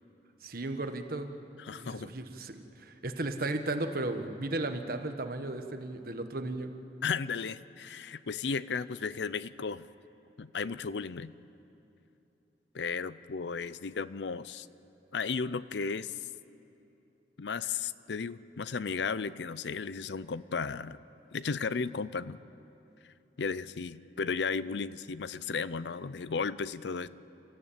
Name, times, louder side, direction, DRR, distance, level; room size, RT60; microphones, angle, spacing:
voice 1, 0.4-1.4 1.7-6.7, right 2 dB, 55° right, 6 dB, 1.4 m, -35 dB
voice 2, 1.6-2.1 7.0-9.8 10.4-11.3 12.7-14.7 15.1-16.2 17.4-21.0 21.3-22.4 23.4-27.1, left 5 dB, 80° left, 17 dB, 0.6 m, -34 dB
29.0 x 14.0 x 8.7 m, 2.9 s
head